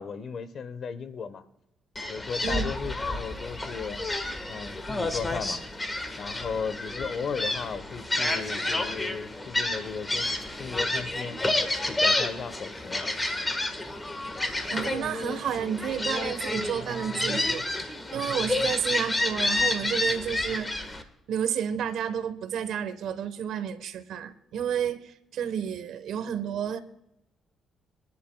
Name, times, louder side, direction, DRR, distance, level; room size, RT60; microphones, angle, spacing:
voice 1, 0.0-1.4 2.1-4.0 4.5-5.6 6.2-10.3 10.6-11.4 11.9-13.0, left 5 dB, 55° left, 1.0 m, -35 dB
Gull seagull, 2.0-21.0, left 2 dB, 20° left, 1.5 m, -30 dB
voice 2, 14.7-21.0 21.3-26.8, right 8 dB, 75° right, 1.1 m, -31 dB
24.0 x 11.0 x 2.3 m
cardioid pair, 90°, 0 cm